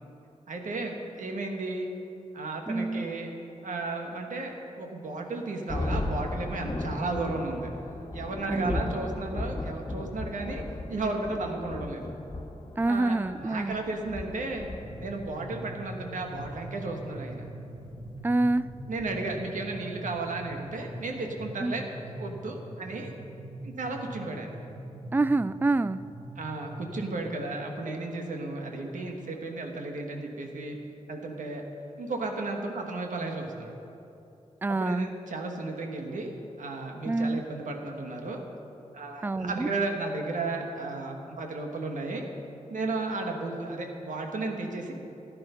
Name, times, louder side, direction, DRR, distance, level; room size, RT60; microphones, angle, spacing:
voice 1, 0.5-1.9 2.3-3.3 3.6-7.7 8.1-10.6 10.9-12.1 12.8-14.7 15.0-17.4 18.9-21.9 22.2-23.1 23.6-24.6 26.3-30.8 31.1-31.6 32.0-33.7 34.7-36.3 36.6-38.4 38.9-42.2 42.7-44.9, right 2 dB, 85° right, 2 dB, 1.5 m, -34 dB
voice 2, 2.7-3.0 8.5-8.8 12.8-13.8 18.2-18.7 21.6-21.7 25.1-26.0 34.6-35.1 37.1-37.4 39.2-39.7, right 2 dB, 15° right, 16 dB, 0.4 m, -26 dB
Thunder, 5.7-19.6, left 2 dB, 40° left, 1.5 m, -37 dB
sound 1, 14.8-27.1, right 1 dB, 60° right, 1.5 m, -42 dB
14.0 x 9.9 x 5.7 m, 2.9 s
cardioid pair, 50°, 13 cm